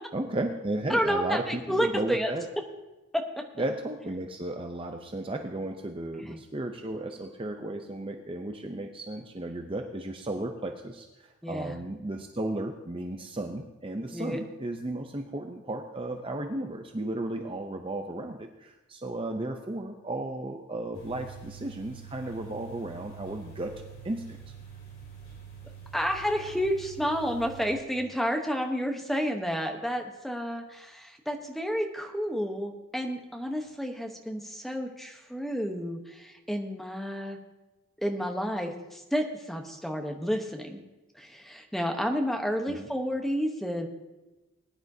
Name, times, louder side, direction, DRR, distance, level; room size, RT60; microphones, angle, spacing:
voice 1, 0.1-2.5 3.6-24.4 42.7-42.9, right 1 dB, 25° right, 4 dB, 0.6 m, -34 dB
voice 2, 0.9-2.3 3.1-3.4 6.3-6.4 11.4-11.7 14.1-14.4 25.9-37.4 38.0-40.8 41.2-43.9, equal, ahead, 3 dB, 1.0 m, -30 dB
sound 1, 20.9-27.7, right 7 dB, 55° left, 4.3 m, -46 dB
20.5 x 10.5 x 2.8 m, 1.1 s
head